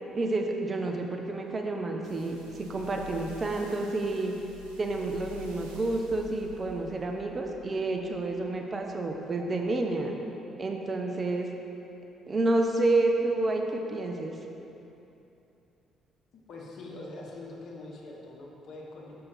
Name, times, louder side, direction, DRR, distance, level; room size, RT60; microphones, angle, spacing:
voice 1, 0.1-4.3 4.8-10.2 10.6-11.5 12.3-14.3, right 2 dB, 35° right, 2 dB, 0.7 m, -29 dB
sound 1, 2.0-8.5 9.1-9.2, left 3 dB, 85° right, 0.6 m, -48 dB
voice 2, 16.5-19.3, left 2 dB, 55° left, -2 dB, 1.1 m, -43 dB
6.7 x 5.7 x 4.1 m, 2.9 s
figure-of-eight pair, 45°, 0 cm